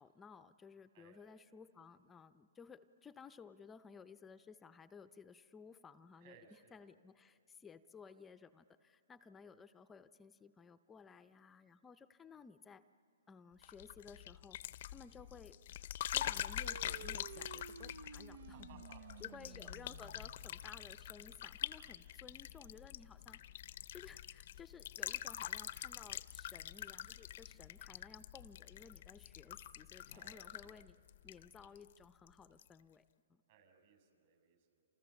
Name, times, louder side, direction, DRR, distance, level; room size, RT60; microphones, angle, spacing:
voice 1, 0.0-6.4 6.7-12.8 13.3-14.6 14.9-15.6 16.1-18.8 19.2-23.4 23.9-31.0 31.2-33.0 33.3-33.4, left 5 dB, 10° left, 11 dB, 0.6 m, -57 dB
voice 2, 6.2-6.9 18.4-19.4 30.1-30.8 33.5-34.9, right 6 dB, 50° right, 6 dB, 6.9 m, -64 dB
sound 1, 13.6-32.0 32.3-32.7, left 12 dB, 55° left, 0.6 m, -45 dB
sound 2, 16.6-21.5, right 7 dB, 70° right, 0.7 m, -54 dB
29.5 x 28.0 x 7.1 m, 2.4 s
hypercardioid pair, 145°, 0 cm